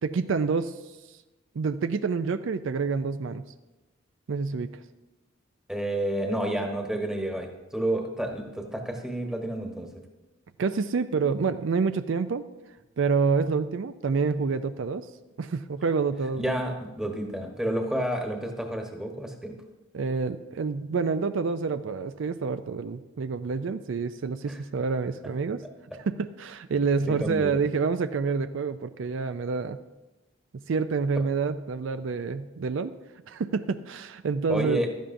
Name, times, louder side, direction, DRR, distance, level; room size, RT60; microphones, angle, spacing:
voice 1, 0.0-0.7 1.6-3.4 4.3-4.8 10.6-12.5 13.0-15.1 15.4-16.5 19.9-25.6 26.0-29.8 30.7-32.9 33.3-34.8, right 5 dB, 65° right, 11 dB, 0.4 m, -27 dB
voice 2, 5.7-10.0 16.3-19.5 24.5-24.6 27.0-27.5 34.5-34.9, right 1 dB, 5° right, 2 dB, 1.1 m, -30 dB
15.5 x 12.5 x 2.6 m, 1.1 s
head